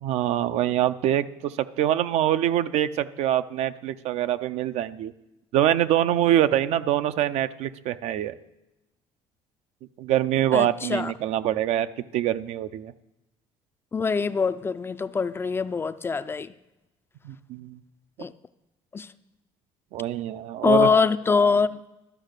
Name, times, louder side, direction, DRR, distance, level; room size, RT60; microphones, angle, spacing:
voice 1, 0.0-5.1 5.5-8.4 10.0-11.9 12.1-12.9 17.2-17.8 19.9-20.9, right 12 dB, 70° right, 12 dB, 0.5 m, -24 dB
voice 2, 10.5-11.1 13.9-16.5 18.2-18.3 18.9-19.1 20.6-21.8, left 5 dB, 20° left, 13 dB, 0.3 m, -23 dB
12.0 x 5.5 x 6.6 m, 0.97 s
cardioid pair, 120°, 12 cm